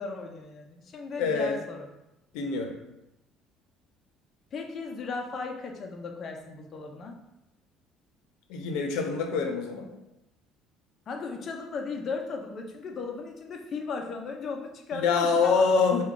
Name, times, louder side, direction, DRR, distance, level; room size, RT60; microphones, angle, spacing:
voice 1, 0.0-1.9 4.5-7.2 11.1-15.6, left 4 dB, 35° left, 2 dB, 0.5 m, -36 dB
voice 2, 1.2-1.6 2.3-2.7 8.5-9.9 14.9-16.0, left 5 dB, 85° left, 3 dB, 0.6 m, -25 dB
4.6 x 2.2 x 3.7 m, 0.92 s
cardioid pair, 140°, 0 cm